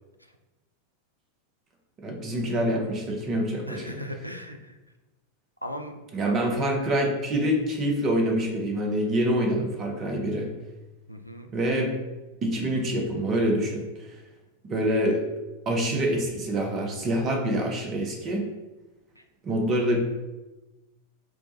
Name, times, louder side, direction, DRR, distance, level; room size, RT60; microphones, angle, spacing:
voice 1, 2.0-4.0 6.1-10.5 11.5-12.0 12.4-14.1 14.6-15.2 15.7-18.5 19.4-20.0, right 1 dB, 30° right, 2 dB, 0.7 m, -26 dB
voice 2, 3.7-4.8 5.6-5.9 6.2-6.4 11.1-11.5 19.2-19.3, equal, 90° right, 5 dB, 0.3 m, -37 dB
4.5 x 2.2 x 2.8 m, 1.1 s
figure-of-eight pair, 90°, 0 cm